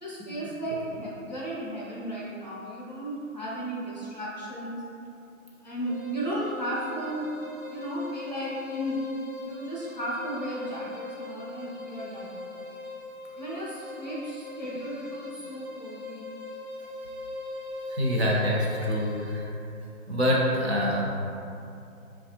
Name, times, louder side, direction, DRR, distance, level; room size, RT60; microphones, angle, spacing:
voice 1, 0.0-4.8 5.6-7.3 7.7-9.0 9.4-12.8 13.4-16.3, right 1 dB, 30° left, -7 dB, 0.6 m, -35 dB
sound 1, 5.8-19.5, left 3 dB, 90° right, 0.8 m, -41 dB
voice 2, 17.9-19.5 20.1-21.1, equal, 50° right, -3 dB, 0.7 m, -25 dB
4.1 x 2.3 x 2.8 m, 2.6 s
hypercardioid pair, 175°, 42 cm